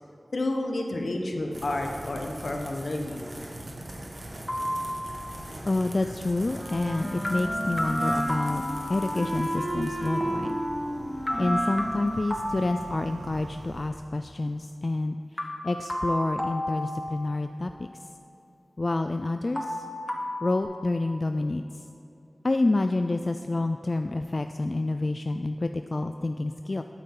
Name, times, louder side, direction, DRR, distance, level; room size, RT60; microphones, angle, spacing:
voice 1, 0.3-3.2, left 2 dB, 75° left, 2 dB, 1.1 m, -30 dB
sound 1, 1.5-13.9, right 1 dB, 45° right, 1.4 m, -42 dB
sound 2, 4.5-5.6 7.2-9.6 11.3-13.6 15.4-17.7 19.5-20.6, equal, 25° left, 1.1 m, -33 dB
voice 2, 5.6-8.6 8.9-10.6 11.4-17.9 18.8-19.9 20.4-21.6 22.4-26.8, left 2 dB, 45° left, 7 dB, 0.3 m, -28 dB
Wind instrument woodwind instrument, 6.5-13.1, right 1 dB, 15° right, 2.3 m, -32 dB
13.0 x 9.0 x 3.9 m, 2.8 s
wide cardioid pair, 70°, 0 cm